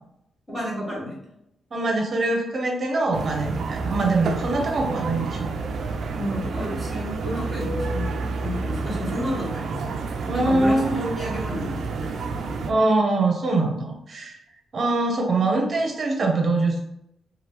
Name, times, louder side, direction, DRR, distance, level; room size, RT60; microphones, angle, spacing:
voice 1, 0.5-1.2 6.1-9.8 10.3-12.7, left 1 dB, 15° left, -6 dB, 1.2 m, -31 dB
voice 2, 1.7-5.5 10.2-11.0 12.6-14.3 14.7-16.8, right 2 dB, 40° right, 2 dB, 0.7 m, -23 dB
sound 1, 3.1-12.7, right 4 dB, 65° right, 0.3 m, -29 dB
2.9 x 2.4 x 3.2 m, 0.80 s
wide cardioid pair, 145°, 0 cm